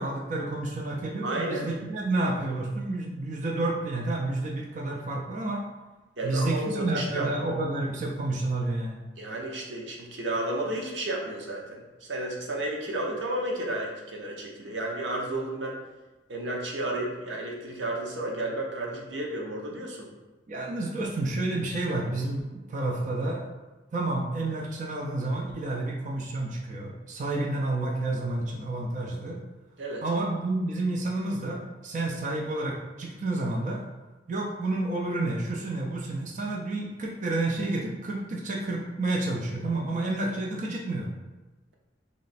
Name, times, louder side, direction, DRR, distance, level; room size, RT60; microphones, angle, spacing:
voice 1, 0.0-5.6 6.2-9.0 20.5-23.5 23.9-29.4 30.0-33.8 34.3-41.1, right 2 dB, 45° right, -1 dB, 0.5 m, -30 dB
voice 2, 1.2-1.7 6.2-7.3 9.2-15.8 16.3-20.1 29.8-30.0, right 1 dB, 90° right, 0 dB, 0.8 m, -32 dB
3.2 x 3.1 x 4.1 m, 1.1 s
head